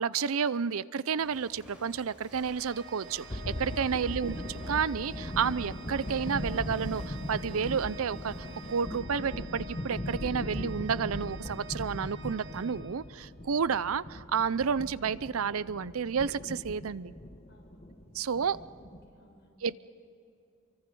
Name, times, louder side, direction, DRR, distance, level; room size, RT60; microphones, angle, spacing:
voice 1, 0.0-8.3 8.7-17.1 18.1-18.6 19.6-19.8, right 6 dB, 75° right, 18 dB, 0.5 m, -31 dB
Walk footsteps, 1.2-8.9, right 1 dB, 5° right, 6.2 m, -55 dB
Organ, 2.6-13.4, right 2 dB, 55° right, 2.2 m, -49 dB
sound 1, 3.3-19.1, left 1 dB, 30° left, 1.4 m, -39 dB
voice 2, 18.8-19.7, left 1 dB, 55° left, -2 dB, 7.4 m, -62 dB
28.0 x 24.0 x 5.4 m, 2.6 s
head